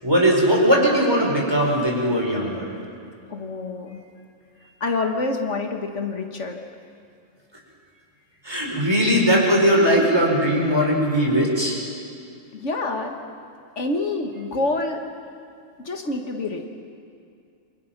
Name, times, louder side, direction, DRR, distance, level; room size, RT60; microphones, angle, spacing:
voice 1, 0.0-2.7 8.4-11.8, equal, 20° right, -2 dB, 5.1 m, -19 dB
voice 2, 3.3-4.0 4.8-6.6 12.5-13.1 13.8-15.0 15.8-16.7, left 3 dB, 75° left, 4 dB, 1.9 m, -27 dB
28.5 x 25.5 x 6.0 m, 2.4 s
omnidirectional pair, 1.3 m